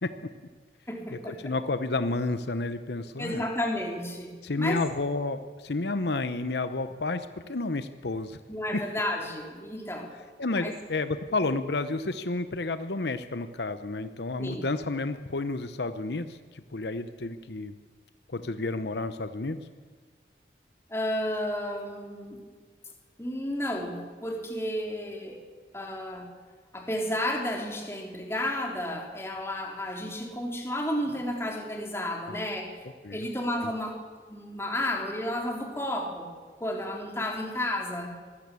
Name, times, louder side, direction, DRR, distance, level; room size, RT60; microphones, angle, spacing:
voice 1, 0.9-1.5 3.2-4.8 8.5-10.1 10.5-10.7 14.4-14.6 20.9-22.4 23.2-25.4 25.7-26.3 26.7-32.7 33.1-34.0 34.3-38.1, left 1 dB, 15° left, 1 dB, 3.4 m, -32 dB
voice 2, 1.4-3.4 4.4-8.4 8.7-8.8 10.4-17.7 18.3-19.6 32.3-32.4 33.0-33.2, left 3 dB, 70° left, 11 dB, 0.9 m, -31 dB
24.5 x 16.0 x 8.4 m, 1.5 s
head